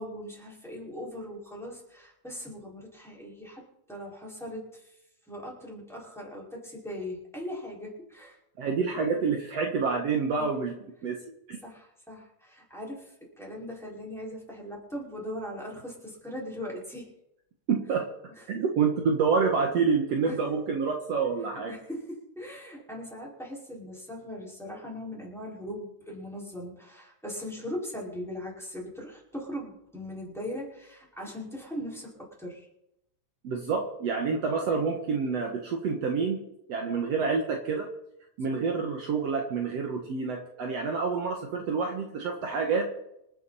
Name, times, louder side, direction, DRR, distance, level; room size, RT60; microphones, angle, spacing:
voice 1, 0.0-3.6 3.9-5.0 5.3-8.4 10.3-10.6 11.6-17.1 18.3-18.5 20.2-20.4 21.7-32.7 37.1-37.2, left 1 dB, ahead, -4 dB, 4.8 m, -40 dB
voice 2, 8.6-10.7 11.0-11.2 11.5-11.6 17.7-18.1 18.5-21.7 33.4-36.4 36.7-37.9 38.4-42.9, right 5 dB, 70° right, 1 dB, 1.5 m, -28 dB
27.0 x 9.4 x 4.3 m, 0.82 s
omnidirectional pair, 5.2 m